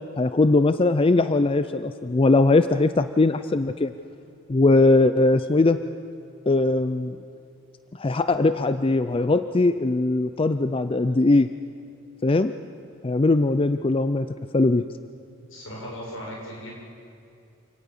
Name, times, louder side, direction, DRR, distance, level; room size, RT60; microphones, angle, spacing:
voice 1, 0.2-3.9 4.5-5.8 6.5-7.2 8.0-11.5 12.2-12.5 13.0-14.3 14.5-14.9, left 2 dB, 25° left, 11 dB, 0.4 m, -20 dB
voice 2, 15.5-16.7, equal, 75° left, -2 dB, 6.8 m, -37 dB
28.0 x 18.0 x 7.3 m, 2.6 s
head